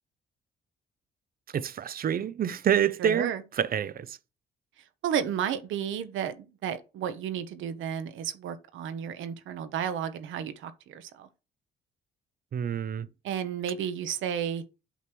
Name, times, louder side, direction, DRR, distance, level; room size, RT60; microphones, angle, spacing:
voice 1, 1.5-4.2 12.5-13.1, right 9 dB, 50° right, 0.6 m, -27 dB
voice 2, 3.0-3.4 5.0-11.3 13.2-14.6, right 8 dB, 80° right, 1.0 m, -32 dB
8.2 x 3.1 x 5.9 m
cardioid pair, 90°, 20 cm